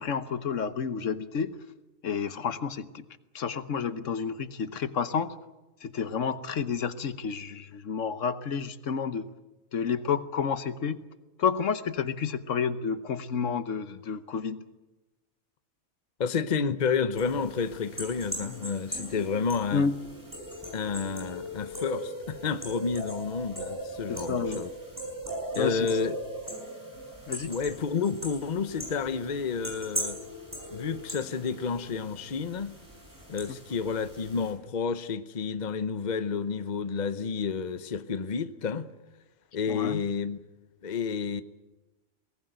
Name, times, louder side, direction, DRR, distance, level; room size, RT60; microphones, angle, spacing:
voice 1, 0.0-1.6 2.0-3.0 3.3-5.3 5.8-9.2 9.7-11.0 11.4-14.6 19.7-19.9 24.1-24.6 25.5-26.0 27.3-27.5 39.7-40.0, left 6 dB, 75° left, 1.3 m, -30 dB
voice 2, 16.2-19.9 20.7-24.7 25.5-26.2 27.5-30.2 30.7-32.8 33.3-38.9 39.5-40.4 40.8-41.4, left 5 dB, 40° left, 0.9 m, -30 dB
sound 1, 17.2-34.5, equal, 15° right, 7.9 m, -39 dB
22.0 x 19.0 x 9.2 m
omnidirectional pair, 1.3 m